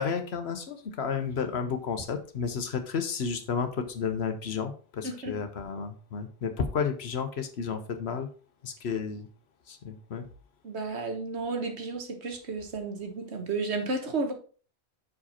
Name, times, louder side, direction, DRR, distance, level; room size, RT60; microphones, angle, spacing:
voice 1, 0.0-8.3 8.6-9.3 9.7-10.3, left 6 dB, 60° left, 1.1 m, -32 dB
voice 2, 5.0-5.4 10.6-14.3, right 3 dB, 60° right, 1.5 m, -32 dB
6.1 x 4.9 x 4.2 m
omnidirectional pair, 1.3 m